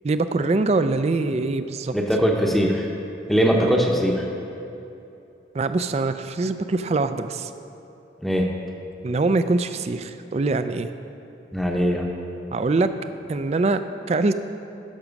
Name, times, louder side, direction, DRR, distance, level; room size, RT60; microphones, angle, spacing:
voice 1, 0.0-1.9 3.6-3.7 5.5-7.5 9.0-10.9 12.5-12.9 13.3-13.8 14.1-14.4, right 3 dB, 35° right, 11 dB, 0.3 m, -23 dB
voice 2, 1.9-2.9 3.3-4.3 8.2-8.5 11.5-12.0, equal, ahead, 0 dB, 0.7 m, -21 dB
13.0 x 6.0 x 5.2 m, 2.9 s
head